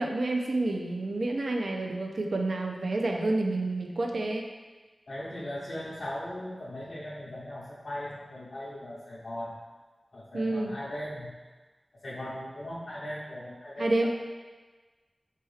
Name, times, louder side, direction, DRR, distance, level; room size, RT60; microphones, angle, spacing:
voice 1, 0.0-4.5 10.3-10.7 13.8-14.1, right 2 dB, 80° right, 2 dB, 0.4 m, -29 dB
voice 2, 5.1-9.6 10.1-11.4 12.0-14.1, left 1 dB, 70° left, -7 dB, 0.6 m, -38 dB
4.5 x 2.9 x 3.2 m, 1.3 s
wide cardioid pair, 85°, 0 cm